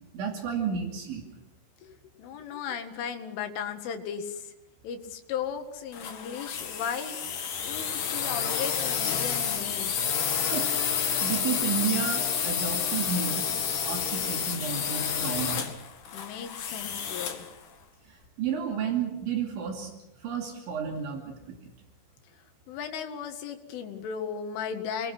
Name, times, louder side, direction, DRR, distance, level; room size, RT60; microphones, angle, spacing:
voice 1, 0.1-1.3 10.5-10.7 11.2-13.4 13.8-15.6 18.1-19.9 20.2-21.6, right 7 dB, 70° right, 1 dB, 4.9 m, -32 dB
voice 2, 1.8-4.5 4.8-7.2 7.6-10.0 16.1-17.5 22.3-25.1, left 7 dB, 75° left, 6 dB, 4.4 m, -36 dB
sound 1, 5.9-17.5, left 7 dB, 50° left, 2.8 m, -30 dB
28.5 x 22.0 x 6.2 m, 0.91 s
omnidirectional pair, 5.8 m